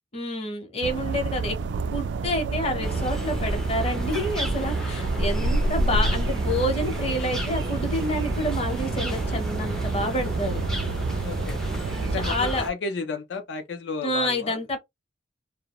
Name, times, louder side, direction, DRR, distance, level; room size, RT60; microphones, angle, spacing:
voice 1, 0.1-1.6 1.9-10.6 12.1-12.6 14.0-14.8, left 1 dB, 35° left, 0.7 m, -28 dB
sound 1, 0.8-12.3, right 3 dB, 80° right, 0.3 m, -28 dB
sound 2, 2.8-12.7, equal, 5° left, 0.3 m, -32 dB
voice 2, 11.2-11.6 12.0-14.6, left 3 dB, 80° left, 0.5 m, -33 dB
2.3 x 2.0 x 2.8 m
head